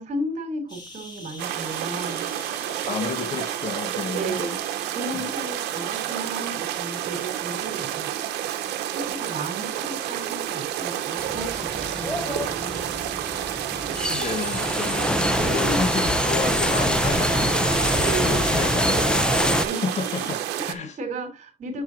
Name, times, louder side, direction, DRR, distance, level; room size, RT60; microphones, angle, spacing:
voice 1, 0.0-2.3 4.0-4.5 4.9-8.1 8.9-12.9 15.4-15.8 17.9-18.4 19.6-19.8 20.3-21.8, right 2 dB, 45° right, 2.8 m, -34 dB
sound 1, 0.7-20.3, left 1 dB, 25° left, 3.0 m, -45 dB
sound 2, 1.4-20.7, right 12 dB, 80° right, 0.9 m, -30 dB
voice 2, 2.8-4.6 5.1-5.2 14.1-15.1 15.3-17.7 18.2-21.0, left 5 dB, 40° left, 1.2 m, -31 dB
sound 3, 11.2-19.7, left 1 dB, 5° left, 0.6 m, -24 dB
7.6 x 7.0 x 2.6 m
cardioid pair, 110°, 17 cm